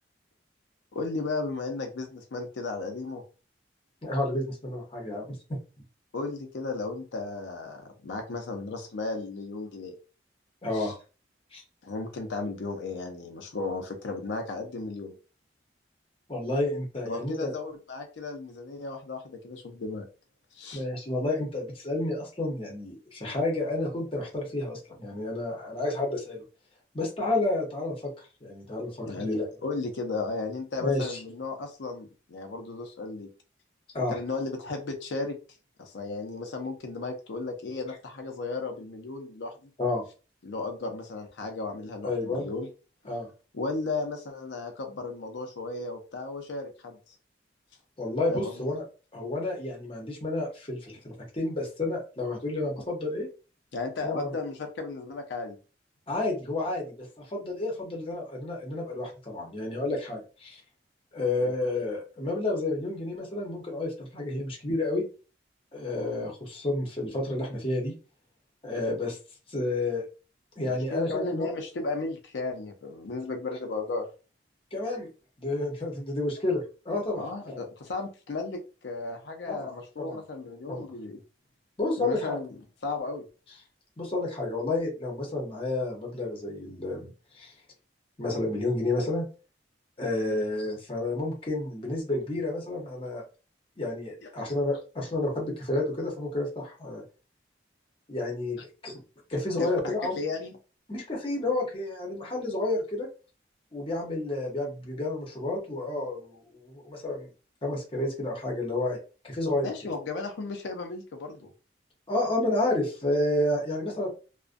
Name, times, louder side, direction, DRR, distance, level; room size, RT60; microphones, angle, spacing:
voice 1, 0.9-3.2 6.1-9.9 10.7-10.9 11.8-15.1 17.1-20.1 20.5-20.8 29.1-33.3 34.0-35.4 35.8-39.7 40.4-42.7 43.5-47.1 48.3-48.7 53.7-55.6 61.4-61.5 70.6-74.1 77.2-81.2 82.0-82.5 82.8-83.2 90.2-90.4 94.2-94.3 99.6-100.6 109.6-111.5, left 3 dB, 80° left, 4 dB, 0.5 m, -35 dB
voice 2, 4.0-5.6 10.6-11.0 11.5-11.6 16.3-17.5 20.7-26.4 26.9-29.5 30.8-31.2 33.9-34.2 39.8-40.1 42.0-42.5 43.1-43.3 48.0-48.8 49.1-53.3 54.0-54.3 56.1-60.6 61.1-65.0 65.7-67.9 68.6-69.2 69.5-70.0 70.6-71.5 74.7-75.1 75.4-77.6 79.5-79.7 80.0-80.2 80.7-80.9 81.8-82.4 84.0-87.5 88.2-89.2 90.0-93.2 93.8-97.0 98.1-99.0 99.3-100.2 100.9-103.1 103.7-107.3 107.6-109.0 109.2-109.9 112.1-114.1, left 2 dB, 30° left, -1 dB, 0.7 m, -30 dB
2.4 x 2.1 x 2.5 m, 0.34 s
head